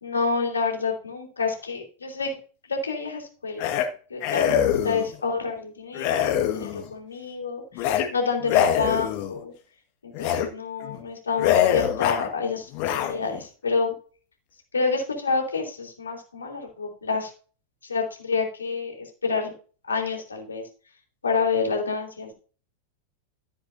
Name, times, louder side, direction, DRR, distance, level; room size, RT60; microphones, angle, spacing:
voice 1, 0.0-2.4 2.6-3.7 4.1-9.5 10.0-13.9 14.7-17.3 17.8-19.5 19.9-20.6 21.2-22.3, left 4 dB, 75° left, 2 dB, 3.2 m, -28 dB
sound 1, 3.6-3.9 4.2-5.1 5.9-6.9 7.7-8.1 8.4-9.4 10.1-10.5 10.8-11.0 11.4-12.3 12.7-13.4, left 10 dB, 45° left, 1.6 m, -24 dB
14.5 x 7.6 x 2.7 m, 0.38 s
figure-of-eight pair, 90°, 0 cm